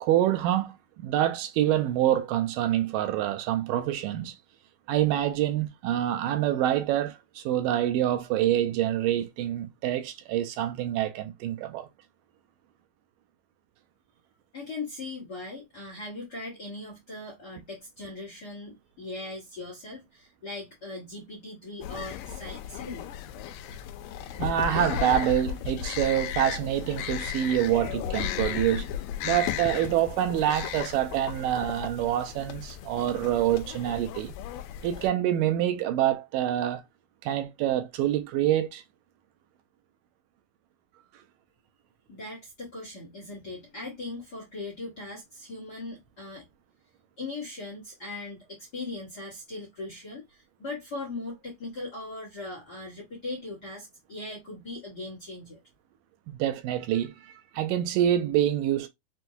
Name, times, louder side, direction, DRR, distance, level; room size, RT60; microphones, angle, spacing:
voice 1, 0.0-4.3 4.9-11.9 24.4-28.9 29.2-34.3 34.8-36.8 37.2-38.8 56.3-58.9, right 12 dB, 80° right, 2.2 m, -26 dB
voice 2, 14.5-23.1 42.1-46.4 47.2-55.6, left 2 dB, 50° left, 1.3 m, -39 dB
sound 1, 21.8-35.1, left 10 dB, 85° left, 2.2 m, -35 dB
6.2 x 2.2 x 2.7 m
omnidirectional pair, 3.8 m